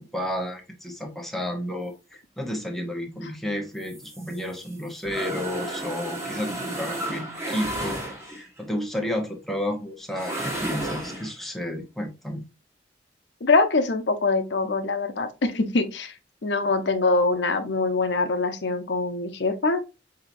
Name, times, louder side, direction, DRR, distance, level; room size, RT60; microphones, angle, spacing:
voice 1, 0.0-8.0 8.3-12.5, left 1 dB, ahead, 0.7 m, -32 dB
sound 1, 3.8-8.6 10.1-11.3, right 1 dB, 15° right, 1.3 m, -33 dB
voice 2, 13.4-16.1 16.4-19.8, left 3 dB, 75° left, 0.7 m, -23 dB
5.6 x 2.8 x 2.5 m
head